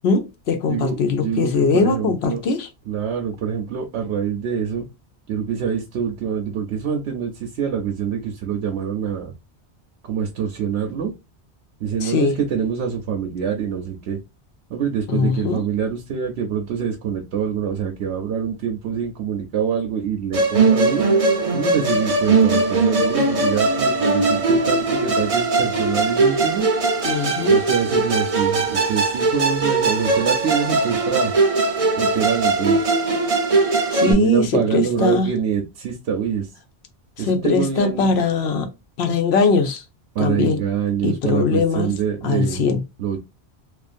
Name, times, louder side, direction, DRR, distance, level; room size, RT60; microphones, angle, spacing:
voice 1, 0.0-2.7 12.0-12.4 15.1-15.6 27.0-27.6 33.9-35.3 37.2-38.7 39.0-39.8 40.2-40.6 41.0-41.9 42.2-42.8, left 4 dB, 75° left, 0.9 m, -21 dB
voice 2, 0.7-2.4 2.9-4.9 5.3-9.3 10.0-11.1 11.8-14.2 14.7-21.1 21.5-26.7 27.5-31.3 32.0-32.9 34.1-36.5 37.2-38.1 40.1-42.6 43.0-43.2, right 7 dB, 90° right, 0.9 m, -25 dB
Musical instrument, 20.3-34.1, right 3 dB, 40° right, 0.6 m, -19 dB
2.5 x 2.4 x 2.4 m
omnidirectional pair, 1.1 m